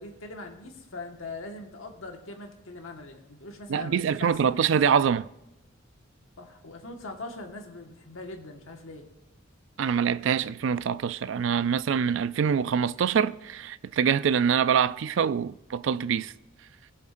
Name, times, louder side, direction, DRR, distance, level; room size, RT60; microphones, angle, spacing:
voice 1, 0.0-4.8 6.4-9.1, left 2 dB, 85° left, 1.6 m, -41 dB
voice 2, 3.7-5.3 9.8-16.3, right 7 dB, 65° right, 0.3 m, -25 dB
20.0 x 7.3 x 2.6 m
head